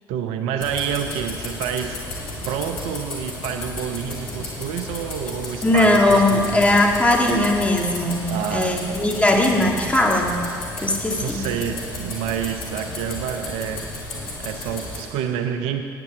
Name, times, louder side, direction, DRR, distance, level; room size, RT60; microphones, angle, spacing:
voice 1, 0.1-2.0 2.5-6.7 8.3-8.8 11.2-13.8 14.4-15.9, right 8 dB, 65° right, 7 dB, 0.7 m, -28 dB
sound 1, 0.6-15.0, left 2 dB, 70° left, 2.7 m, -33 dB
voice 2, 5.6-10.5 10.8-11.5, left 1 dB, 10° left, 0 dB, 1.9 m, -19 dB
10.5 x 9.8 x 6.0 m, 2.2 s
hypercardioid pair, 55°, 11 cm